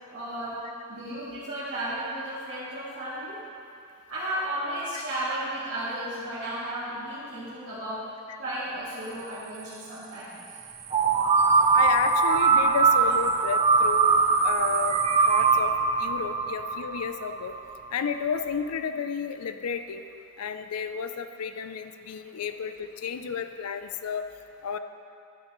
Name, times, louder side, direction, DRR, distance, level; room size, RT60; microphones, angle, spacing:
voice 1, 0.1-0.6 0.9-3.4 4.1-8.1 8.4-10.4 22.3-22.4 23.2-23.3, right 1 dB, 60° right, -14 dB, 2.4 m, -34 dB
sound 1, 10.9-17.7, right 4 dB, 25° right, 0.4 m, -22 dB
voice 2, 11.7-15.0 15.3-15.7 16.0-17.5 17.9-20.0 20.4-24.2 24.6-24.8, left 6 dB, 90° left, 9 dB, 0.5 m, -32 dB
12.0 x 9.6 x 3.1 m, 2.6 s
head